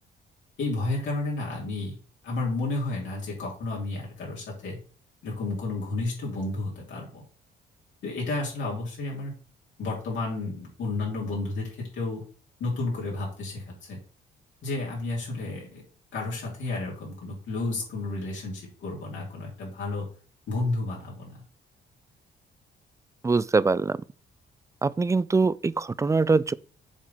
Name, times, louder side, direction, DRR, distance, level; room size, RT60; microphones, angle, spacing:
voice 1, 0.6-2.0 2.2-4.8 5.2-7.2 8.0-9.3 9.8-12.2 12.6-14.0 14.6-15.8 16.1-20.1 20.5-21.4, left 2 dB, 70° left, 3.5 m, -31 dB
voice 2, 23.2-24.0 24.8-26.5, right 4 dB, 15° right, 0.3 m, -23 dB
7.2 x 3.8 x 5.8 m
cardioid pair, 90°, 20 cm